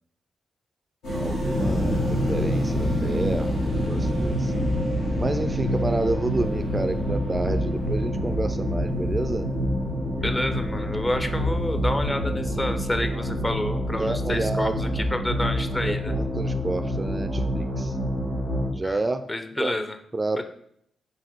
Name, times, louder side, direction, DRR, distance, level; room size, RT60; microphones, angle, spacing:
sound 1, 1.0-18.7, equal, 80° left, 1.1 m, -27 dB
voice 1, 1.1-4.5 5.1-9.5 14.0-14.8 15.9-18.0 18.7-19.3 19.6-19.8 20.1-20.4, right 2 dB, 30° right, 9 dB, 0.3 m, -29 dB
sound 2, 1.5-12.7, left 1 dB, 60° left, 1.7 m, -33 dB
voice 2, 10.2-16.1 18.8-19.0 19.3-20.0 20.4-20.5, left 1 dB, 25° left, 8 dB, 0.5 m, -29 dB
3.9 x 3.9 x 3.0 m, 0.70 s
hypercardioid pair, 40°, 0 cm